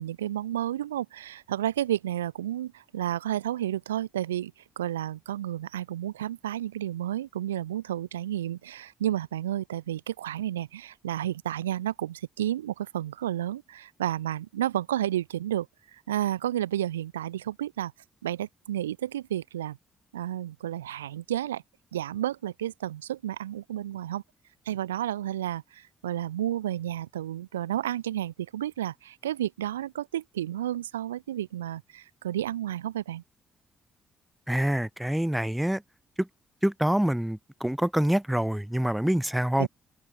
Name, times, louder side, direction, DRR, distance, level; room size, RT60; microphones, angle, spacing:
voice 1, 0.0-4.5 4.8-15.7 15.9-17.9 18.2-19.8 20.1-21.6 21.9-24.2 24.7-33.2 39.6-39.7, right 12 dB, 85° right, 1.2 m, -31 dB
voice 2, 34.5-35.8 36.2-36.3 36.6-39.7, right 1 dB, 5° right, 1.0 m, -26 dB
figure-of-eight pair, 40°, 0 cm